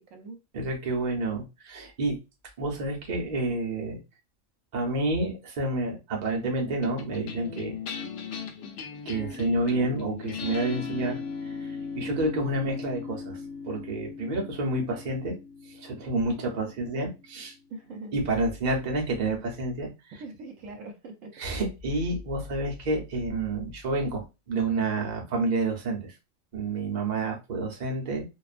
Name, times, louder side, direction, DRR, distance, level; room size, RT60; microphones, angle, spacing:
voice 1, 0.0-0.4 17.7-18.1 20.2-21.3, right 3 dB, 80° right, 4 dB, 1.0 m, -42 dB
voice 2, 0.5-2.2 2.6-4.0 4.7-7.8 9.1-11.2 11.6-13.4 13.6-15.3 15.7-17.5 18.1-19.9 21.4-26.1 26.5-28.2, right 2 dB, 40° right, 0 dB, 0.7 m, -29 dB
sound 1, 6.8-17.4, left 5 dB, 80° left, 1.0 m, -38 dB
2.5 x 2.3 x 2.4 m, 0.26 s
omnidirectional pair, 1.4 m